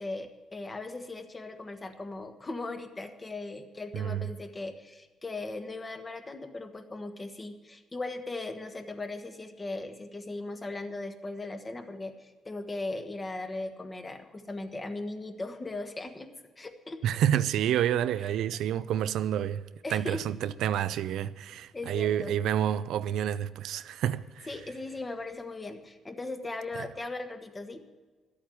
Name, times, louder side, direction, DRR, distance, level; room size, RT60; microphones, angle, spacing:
voice 1, 0.0-16.3 16.6-17.0 19.8-20.2 21.7-22.4 24.5-27.8, left 2 dB, 25° left, 1.5 m, -38 dB
voice 2, 3.9-4.2 17.0-19.6 19.9-24.5 26.8-26.9, right 10 dB, 80° right, 0.5 m, -29 dB
12.0 x 8.5 x 9.2 m
cardioid pair, 90°, 0 cm